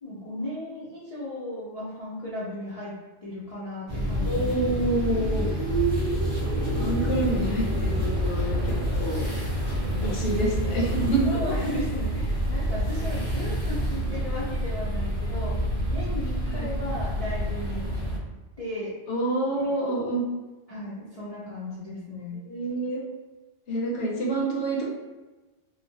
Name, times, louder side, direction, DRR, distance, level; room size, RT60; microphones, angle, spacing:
voice 1, 0.0-2.9 3.2-4.9 11.2-15.6 15.9-17.8 18.6-18.9 20.7-22.4, left 1 dB, 50° left, -9 dB, 0.4 m, -35 dB
sound 1, 3.9-18.2, right 1 dB, 40° right, 0.5 m, -27 dB
voice 2, 4.3-5.5 6.8-9.3 10.0-11.4 16.4-16.7 19.1-20.2 22.5-23.0 23.7-24.8, right 1 dB, 70° left, -3 dB, 1.0 m, -27 dB
3.0 x 2.1 x 2.7 m, 1.2 s
omnidirectional pair, 1.3 m